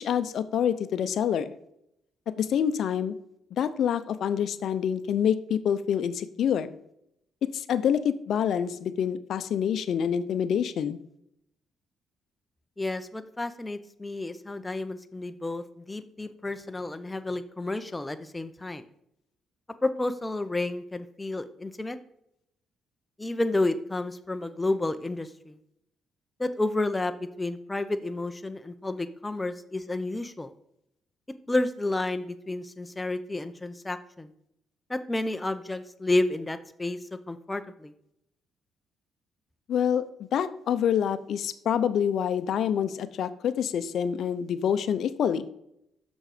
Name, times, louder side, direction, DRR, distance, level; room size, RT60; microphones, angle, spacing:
voice 1, 0.0-1.5 2.4-3.1 3.6-6.7 7.5-11.0 39.7-40.1 40.3-45.4, left 8 dB, 65° left, 13 dB, 0.6 m, -26 dB
voice 2, 12.8-18.8 19.8-22.0 23.2-25.6 26.4-30.5 31.5-34.3 34.9-37.0 37.3-37.9, left 2 dB, 15° left, 10 dB, 0.7 m, -31 dB
6.4 x 6.2 x 5.0 m, 0.79 s
cardioid pair, 90°, 0 cm